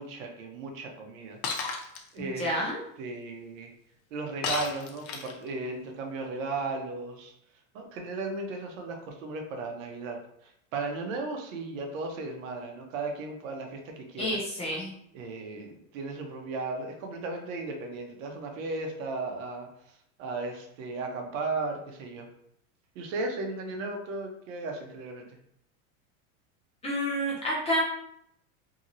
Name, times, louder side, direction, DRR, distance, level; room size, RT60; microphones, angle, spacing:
voice 1, 0.0-1.4 2.1-2.6 3.0-3.7 4.1-7.3 7.7-14.4 15.1-19.9 20.2-22.3 22.9-25.3, right 3 dB, 65° right, 3 dB, 0.8 m, -36 dB
Shatter, 1.4-2.0 4.4-5.5, left 5 dB, 85° left, 0.8 m, -32 dB
voice 2, 2.2-2.8 14.2-14.9 26.8-27.8, equal, 15° left, -5 dB, 0.5 m, -29 dB
2.8 x 2.7 x 2.6 m, 0.73 s
supercardioid pair, 140°, 43 cm